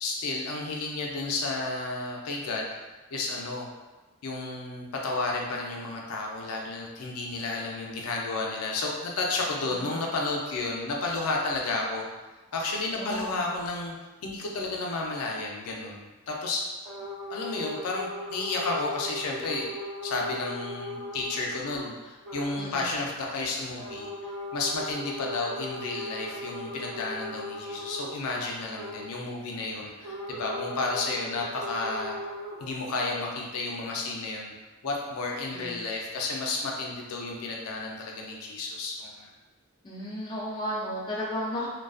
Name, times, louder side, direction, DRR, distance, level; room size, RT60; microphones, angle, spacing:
voice 1, 0.0-2.7 3.1-3.7 4.2-12.1 12.5-14.0 14.2-16.6 17.3-19.7 20.0-32.2 32.6-34.5 34.8-39.3, left 3 dB, 85° left, -1 dB, 0.4 m, -32 dB
voice 2, 9.6-10.0 13.0-13.4 22.6-22.9 35.5-35.8 39.8-41.7, equal, 20° left, -6 dB, 0.3 m, -34 dB
sound 1, 16.8-21.9 22.2-22.6 23.8-29.1 30.0-32.7, left 1 dB, 70° right, 1.0 m, -38 dB
2.4 x 2.2 x 2.3 m, 1.2 s
head